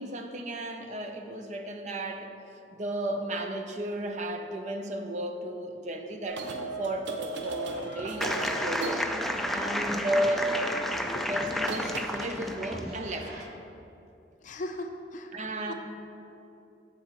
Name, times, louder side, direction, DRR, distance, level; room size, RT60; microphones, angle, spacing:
voice 1, 0.0-2.3 2.7-9.1 9.5-10.6 11.0-13.5 15.3-15.7, right 1 dB, 45° right, 5 dB, 0.6 m, -33 dB
sound 1, 6.2-9.7 11.2-11.4 11.6-12.4, right 3 dB, 85° right, 0.6 m, -37 dB
sound 2, 7.4-13.4, right 1 dB, 60° right, 1.4 m, -48 dB
sound 3, 8.2-12.9, equal, ahead, 0.3 m, -31 dB
voice 2, 14.4-15.3 15.7-15.8, left 1 dB, 45° left, 4 dB, 0.6 m, -37 dB
14.0 x 4.8 x 3.0 m, 2.8 s
head